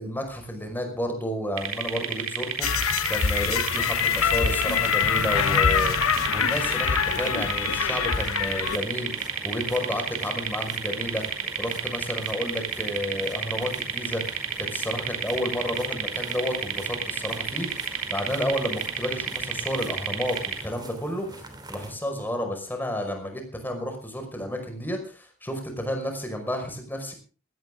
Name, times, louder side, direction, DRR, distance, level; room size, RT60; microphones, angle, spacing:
voice 1, 0.0-11.2 11.6-27.1, equal, 10° left, 4 dB, 5.4 m, -31 dB
sound 1, 1.6-20.6, right 7 dB, 70° right, 3.9 m, -31 dB
sound 2, 2.6-8.8, left 7 dB, 90° left, 0.9 m, -24 dB
sound 3, 3.7-22.0, right 1 dB, 20° right, 3.2 m, -44 dB
19.0 x 17.0 x 3.8 m, 0.37 s
head